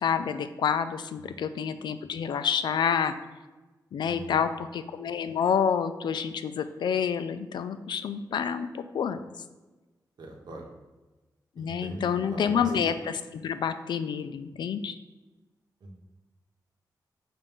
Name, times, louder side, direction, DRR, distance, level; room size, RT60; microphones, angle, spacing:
voice 1, 0.0-3.1 3.9-9.2 11.6-15.0, left 7 dB, 85° left, 11 dB, 0.4 m, -28 dB
voice 2, 4.0-4.5 10.2-10.7 11.6-12.9 15.8-15.9, right 1 dB, 70° right, 1 dB, 0.9 m, -41 dB
6.9 x 2.6 x 5.3 m, 1.2 s
wide cardioid pair, 155°, 7 cm